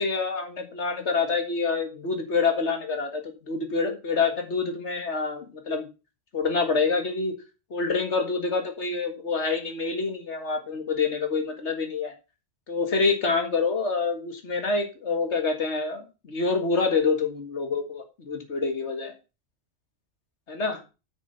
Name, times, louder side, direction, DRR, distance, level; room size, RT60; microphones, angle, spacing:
voice 1, 0.0-5.9 6.3-7.3 7.7-12.1 12.7-19.1 20.5-20.8, left 4 dB, 70° left, 5 dB, 2.0 m, -27 dB
7.4 x 6.8 x 5.7 m, 0.31 s
omnidirectional pair, 1.2 m